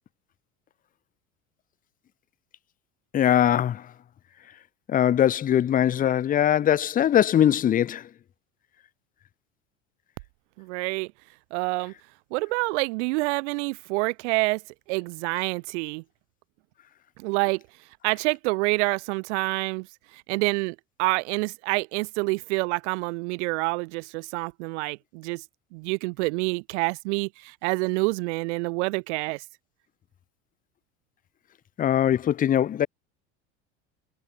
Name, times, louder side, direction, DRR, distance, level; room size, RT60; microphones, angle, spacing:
voice 1, 3.1-3.9 4.9-8.1 31.8-32.9, left 10 dB, 25° left, 0.5 m, -21 dB
voice 2, 10.6-11.1 11.5-11.9 12.3-14.6 14.9-16.0 17.2-17.6 18.0-19.9 20.1-25.4 25.7-29.4, right 27 dB, 75° right, 0.5 m, -27 dB
supercardioid pair, 95°, 35 cm